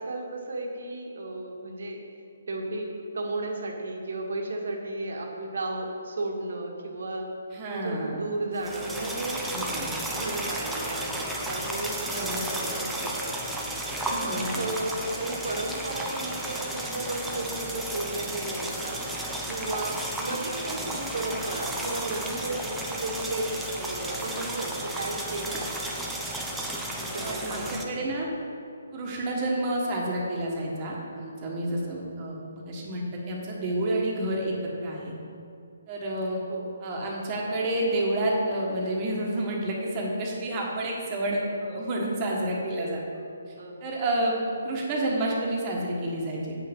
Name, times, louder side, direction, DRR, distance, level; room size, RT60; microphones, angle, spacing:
voice 1, 0.0-2.0 2.5-7.3 7.7-13.3 14.1-19.1 19.5-26.0 27.0-28.2 36.5-36.7 42.3-42.4 43.6-43.9, right 2 dB, 70° right, 1 dB, 1.5 m, -34 dB
voice 2, 7.5-8.2 9.5-9.9 12.1-12.4 14.0-14.6 27.2-28.3 28.9-34.5 34.8-35.1 35.9-36.4 36.8-43.0 43.8-46.5, right 1 dB, 25° right, -2 dB, 1.5 m, -29 dB
sound 1, 8.6-27.8, right 1 dB, 5° right, 0.6 m, -33 dB
8.2 x 5.8 x 5.3 m, 2.5 s
hypercardioid pair, 165°, 0 cm